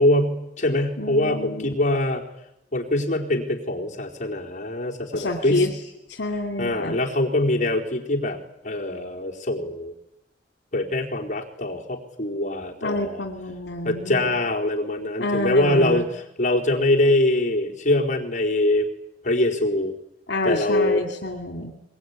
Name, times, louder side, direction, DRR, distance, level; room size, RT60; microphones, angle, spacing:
voice 1, 0.0-2.2 2.7-5.7 6.6-8.4 8.6-9.9 10.7-13.2 13.8-18.9 19.2-19.9 20.4-21.0, left 1 dB, 45° left, 0 dB, 4.3 m, -23 dB
voice 2, 1.0-1.7 5.1-5.8 6.1-7.0 12.8-14.3 15.2-16.1 20.3-21.7, left 2 dB, 70° left, 5 dB, 2.8 m, -28 dB
22.5 x 22.5 x 9.9 m, 0.85 s
head